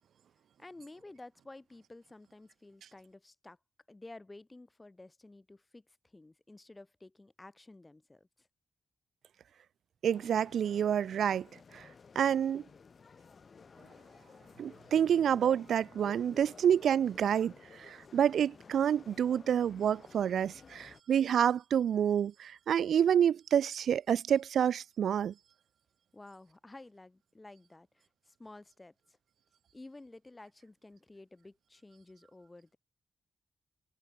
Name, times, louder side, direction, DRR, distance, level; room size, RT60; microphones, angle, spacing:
voice 1, 0.6-3.6 3.9-8.5 26.1-29.2 29.7-32.8, left 2 dB, 20° left, 1.6 m, -52 dB
voice 2, 10.0-11.5 11.7-11.8 12.2-12.6 14.6-25.3, right 9 dB, 85° right, 0.4 m, -28 dB
sound 1, 10.1-21.0, left 5 dB, 45° left, 5.9 m, -55 dB
wide cardioid pair, 110°, 0 cm